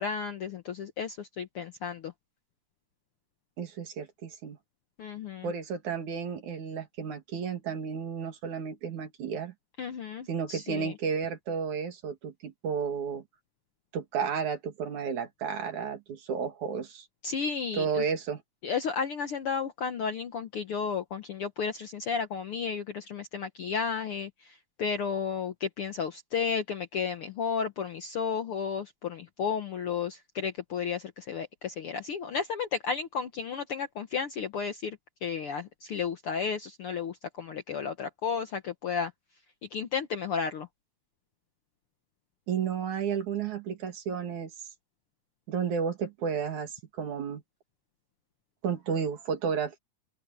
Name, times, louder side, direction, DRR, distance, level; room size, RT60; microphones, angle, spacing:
voice 1, 0.0-2.1 5.0-5.5 9.8-10.9 17.2-18.0 18.6-39.1 39.7-40.7, left 6 dB, 60° left, 1.5 m, -33 dB
voice 2, 3.6-4.6 5.4-9.5 10.3-13.2 13.9-17.1 17.7-18.4 42.5-44.5 45.5-47.4 48.6-49.8, right 6 dB, 65° right, 3.5 m, -32 dB
open air
omnidirectional pair, 3.7 m